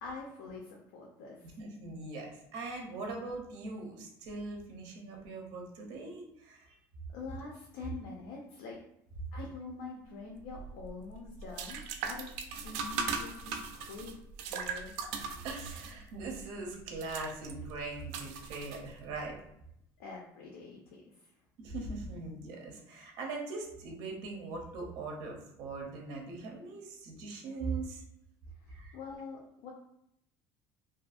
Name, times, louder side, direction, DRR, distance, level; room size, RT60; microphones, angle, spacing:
voice 1, 0.0-1.5 7.1-8.8 9.3-12.3 12.6-14.2 14.5-14.9 20.0-21.3 28.7-29.7, left 4 dB, 85° left, -2 dB, 0.5 m, -45 dB
voice 2, 1.6-6.8 11.4-11.5 14.7-15.1 15.4-19.4 21.6-28.0 28.7-29.0, right 3 dB, 55° right, 1 dB, 0.7 m, -41 dB
sound 1, 10.4-19.3, right 5 dB, 85° right, 0.4 m, -40 dB
2.6 x 2.5 x 2.4 m, 0.75 s
cardioid pair, 165°, 8 cm